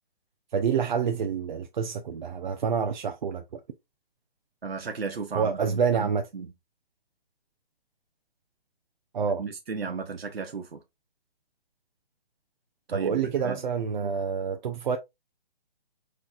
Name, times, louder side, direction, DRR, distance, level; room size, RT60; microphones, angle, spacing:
voice 1, 0.5-3.6 5.3-6.3 9.1-9.4 12.9-15.0, right 6 dB, 50° right, 0.6 m, -27 dB
voice 2, 4.6-6.5 9.4-10.8 12.9-13.6 14.0-14.1, right 5 dB, 85° right, 0.9 m, -35 dB
5.8 x 3.2 x 2.4 m
hypercardioid pair, 145°, 29 cm